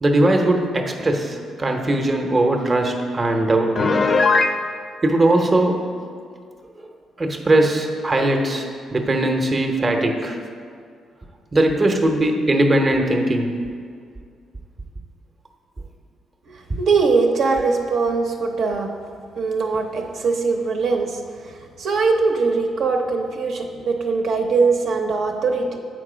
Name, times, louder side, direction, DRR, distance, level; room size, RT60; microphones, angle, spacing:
voice 1, 0.0-3.8 5.0-5.8 7.2-10.4 11.5-13.5, right 1 dB, 25° right, 3 dB, 0.8 m, -19 dB
Piano, 3.7-4.6, left 3 dB, 40° left, 0.6 m, -17 dB
voice 2, 16.5-18.9 19.4-25.8, right 4 dB, 70° right, 2 dB, 0.8 m, -21 dB
7.4 x 4.8 x 5.0 m, 2.2 s
cardioid pair, 90°, 0 cm